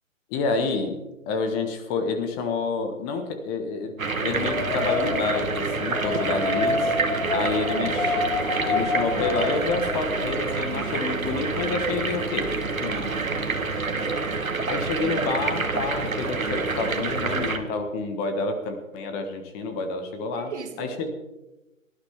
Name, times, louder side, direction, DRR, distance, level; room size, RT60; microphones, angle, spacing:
voice 1, 0.3-1.0 1.3-3.9 4.2-6.9 7.3-8.2 8.6-12.5 12.8-13.0 14.7-20.5 20.8-21.1, left 3 dB, 20° left, 6 dB, 1.4 m, -28 dB
sound 1, 4.0-17.6, right 3 dB, 85° right, 1.8 m, -27 dB
Wind, 4.3-10.3, left 3 dB, 55° left, 2.5 m, -28 dB
voice 2, 7.2-8.0 12.9-13.2 20.3-21.1, right 6 dB, 60° right, 5 dB, 2.1 m, -39 dB
18.0 x 12.0 x 3.6 m, 1.0 s
figure-of-eight pair, 135°, 40 cm